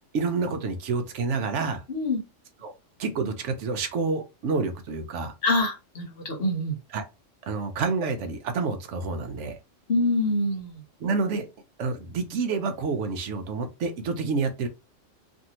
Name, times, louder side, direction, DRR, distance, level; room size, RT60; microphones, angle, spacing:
voice 1, 0.1-1.8 2.6-2.7 3.0-5.3 6.9-7.1 7.5-9.6 11.0-11.5 11.8-14.7, right 4 dB, 70° right, 0.9 m, -28 dB
voice 2, 1.9-2.2 5.4-6.8 9.9-10.8, left 2 dB, 50° left, 1.1 m, -25 dB
2.6 x 2.6 x 2.8 m
omnidirectional pair, 1.3 m